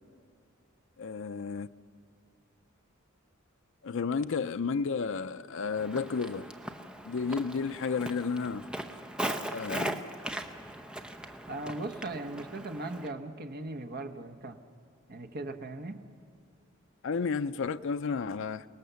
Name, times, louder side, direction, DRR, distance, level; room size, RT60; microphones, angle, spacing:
voice 1, 1.0-1.7 3.8-6.5 7.0-8.7 9.2-10.0 17.0-18.7, left 5 dB, 65° left, 0.5 m, -32 dB
Walk footsteps, 5.7-13.1, right 1 dB, 5° right, 0.8 m, -39 dB
voice 2, 11.5-14.6 15.1-16.0, right 2 dB, 50° right, 1.2 m, -38 dB
29.0 x 18.5 x 6.9 m
head